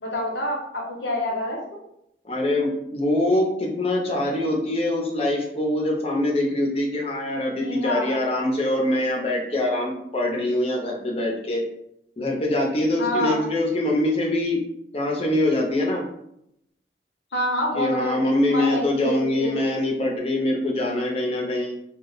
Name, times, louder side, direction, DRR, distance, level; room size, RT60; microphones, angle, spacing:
voice 1, 0.0-1.8 7.6-8.1 13.0-13.4 17.3-19.6, equal, 80° left, -1 dB, 0.7 m, -27 dB
voice 2, 2.2-11.6 12.2-14.6 14.9-16.1 17.7-21.7, left 1 dB, 35° left, -1 dB, 0.6 m, -24 dB
2.3 x 2.1 x 3.8 m, 0.77 s
head